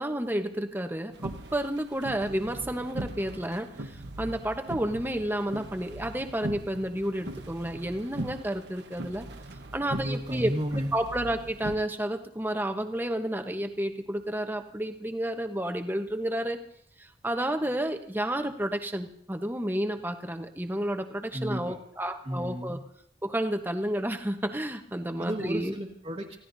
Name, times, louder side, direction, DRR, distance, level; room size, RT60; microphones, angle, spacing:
voice 1, 0.0-9.3 9.7-10.5 10.9-16.6 17.0-22.8 23.2-25.8, right 1 dB, 10° right, 6 dB, 1.0 m, -31 dB
sound 1, 1.1-11.8, right 1 dB, 75° right, 1.2 m, -40 dB
voice 2, 9.9-10.9 21.3-21.8 22.2-22.8 25.2-26.4, equal, 35° right, -4 dB, 1.6 m, -33 dB
29.5 x 16.0 x 2.7 m, 0.68 s
head